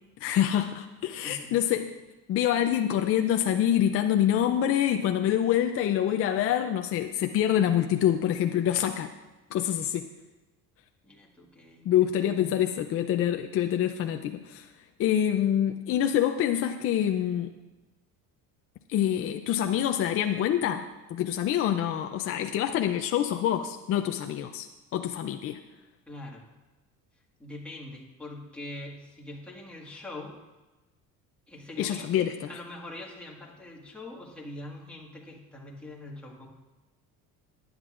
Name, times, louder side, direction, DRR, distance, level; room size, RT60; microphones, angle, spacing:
voice 1, 0.2-1.9 2.3-9.1 9.5-10.1 11.9-14.7 15.0-17.5 18.9-25.6 31.8-32.5, left 10 dB, 45° left, 5 dB, 0.5 m, -26 dB
voice 2, 1.2-1.5 11.0-12.5 26.1-26.4 27.4-30.3 31.5-32.1 32.5-36.5, left 2 dB, 5° left, -3 dB, 1.7 m, -43 dB
18.5 x 10.5 x 2.5 m, 1.1 s
cardioid pair, 165°, 33 cm